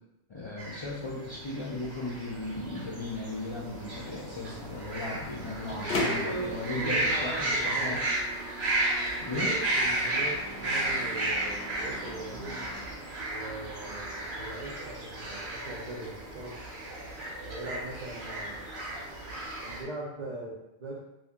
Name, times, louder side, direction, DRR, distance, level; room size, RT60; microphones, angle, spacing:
voice 1, 0.3-8.0 9.2-9.5, left 2 dB, 40° left, -7 dB, 0.5 m, -36 dB
sound 1, 0.6-19.8, right 1 dB, 90° right, 1.2 m, -33 dB
Microwave oven, 4.7-12.9, left 1 dB, 60° left, 0.7 m, -40 dB
voice 2, 5.7-8.0 9.3-12.7 13.3-16.6 17.4-18.7 19.6-21.0, right 2 dB, 55° right, -4 dB, 0.6 m, -40 dB
2.7 x 2.7 x 3.5 m, 0.93 s
omnidirectional pair, 1.1 m